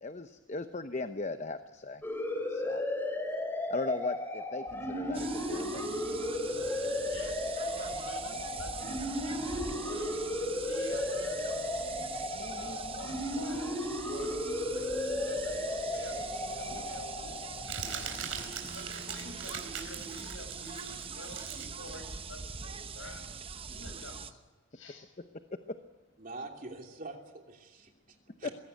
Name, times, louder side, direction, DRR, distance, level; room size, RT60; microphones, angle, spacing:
voice 1, 0.0-2.0 2.5-2.8 3.7-5.8 25.2-25.3 25.5-25.8 28.4-28.5, left 3 dB, 35° left, 9 dB, 0.8 m, -37 dB
sound 1, 2.0-18.4, left 1 dB, 10° left, 3.4 m, -35 dB
sound 2, 5.1-24.3, right 5 dB, 30° right, 0.8 m, -42 dB
voice 2, 6.5-10.2 10.7-11.7 12.6-14.9 15.3-18.1 18.7-23.2 23.7-24.4 24.7-25.1, left 1 dB, 80° left, 6 dB, 5.8 m, -48 dB
Crumpling crinkling, 16.1-23.2, right 7 dB, 85° right, 4.5 m, -42 dB
voice 3, 26.2-28.5, right 2 dB, 45° right, 2 dB, 3.0 m, -45 dB
22.5 x 16.5 x 9.3 m, 1.3 s
head